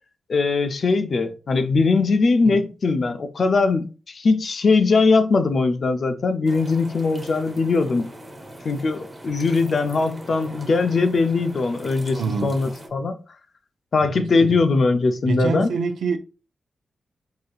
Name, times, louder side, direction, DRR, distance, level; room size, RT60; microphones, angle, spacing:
voice 1, 0.3-8.1 8.6-13.2 13.9-15.7, left 4 dB, 50° left, 0.4 m, -20 dB
sound 1, 6.4-12.9, right 1 dB, 15° right, 0.9 m, -41 dB
voice 2, 12.1-12.6 14.1-14.6 15.2-16.2, right 5 dB, 85° right, 0.5 m, -26 dB
4.8 x 2.7 x 2.3 m
wide cardioid pair, 150°, 0 cm